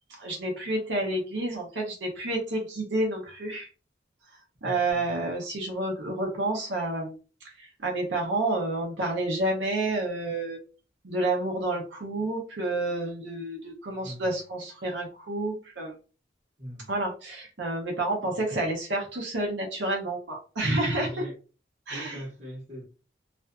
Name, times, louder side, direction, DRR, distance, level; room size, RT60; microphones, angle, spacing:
voice 1, 0.2-3.7 4.6-7.2 7.6-10.6 11.0-15.9 16.9-21.2 21.9-22.2, right 2 dB, 80° right, 0.7 m, -29 dB
voice 2, 4.6-5.2 14.0-14.3 16.6-16.9 18.3-18.4 20.9-21.4 21.9-22.8, equal, 40° right, 1.0 m, -41 dB
2.5 x 2.4 x 2.2 m
head